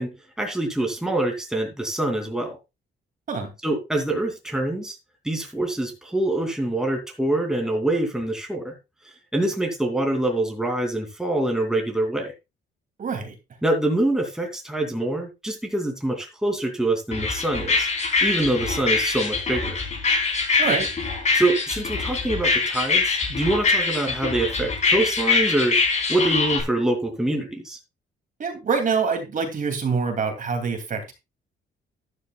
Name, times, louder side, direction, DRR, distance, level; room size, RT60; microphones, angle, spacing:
voice 1, 0.0-2.6 3.6-5.0 5.2-8.7 9.3-12.3 13.6-17.9 18.2-19.8 21.3-25.8 26.1-27.8, right 1 dB, 5° right, 2 dB, 2.7 m, -25 dB
voice 2, 13.0-13.3 20.6-20.9 28.4-31.1, right 5 dB, 40° right, 5 dB, 2.6 m, -25 dB
sound 1, 17.1-26.6, left 4 dB, 35° left, 4.0 m, -23 dB
12.5 x 11.0 x 2.3 m, 0.25 s
cardioid pair, 145°, 20 cm